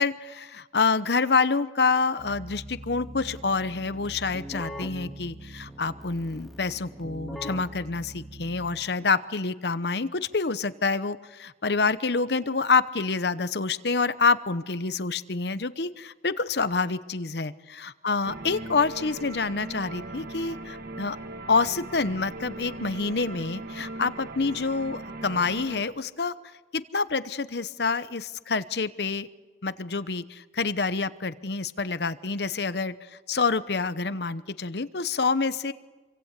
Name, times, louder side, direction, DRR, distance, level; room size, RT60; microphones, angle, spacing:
voice 1, 0.0-21.2 21.5-26.3 26.7-29.3 29.6-32.9 33.3-35.7, left 4 dB, 60° left, 14 dB, 0.9 m, -27 dB
Keyboard (musical), 2.2-9.0, right 1 dB, ahead, 2.1 m, -42 dB
sound 1, 18.3-25.8, right 2 dB, 55° right, 1.5 m, -39 dB
27.0 x 24.5 x 8.3 m, 1.3 s
head